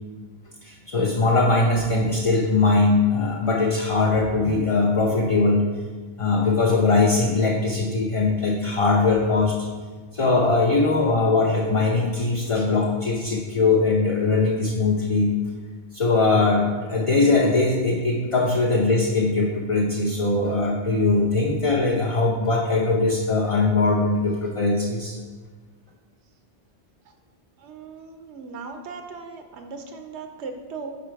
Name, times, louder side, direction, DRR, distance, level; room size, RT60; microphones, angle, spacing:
voice 1, 0.6-5.6 6.2-9.6 10.1-15.3 15.9-25.2, left 3 dB, 40° left, -1 dB, 0.5 m, -21 dB
voice 2, 27.6-30.9, right 4 dB, 80° right, 5 dB, 0.9 m, -38 dB
5.0 x 4.4 x 4.6 m, 1.4 s
omnidirectional pair, 1.1 m